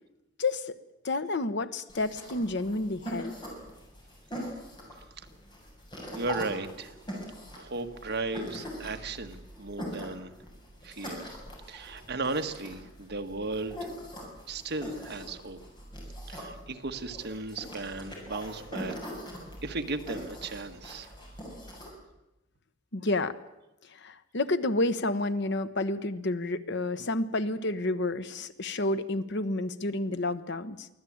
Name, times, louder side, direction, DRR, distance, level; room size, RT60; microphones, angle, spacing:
voice 1, 0.4-0.8 1.0-3.4 22.9-23.4 24.0-30.9, left 2 dB, 60° left, 12 dB, 1.1 m, -30 dB
sound 1, 1.9-21.9, equal, 25° left, 7.4 m, -42 dB
voice 2, 6.1-6.9 7.6-10.3 10.8-11.3 11.7-13.9 14.5-15.6 16.3-19.0 19.6-21.1, right 3 dB, 55° right, 6 dB, 1.6 m, -35 dB
24.0 x 16.0 x 8.7 m, 0.94 s
head